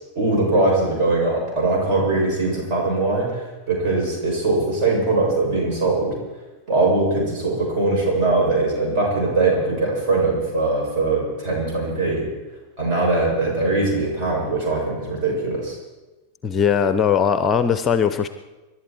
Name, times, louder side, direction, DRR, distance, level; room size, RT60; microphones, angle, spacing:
voice 1, 0.2-6.2 6.7-12.3 12.8-15.7, right 2 dB, 40° right, -2 dB, 7.2 m, -21 dB
voice 2, 16.4-18.3, left 7 dB, 25° left, 11 dB, 0.7 m, -19 dB
26.5 x 11.5 x 4.6 m, 1.1 s
figure-of-eight pair, 90°, 0 cm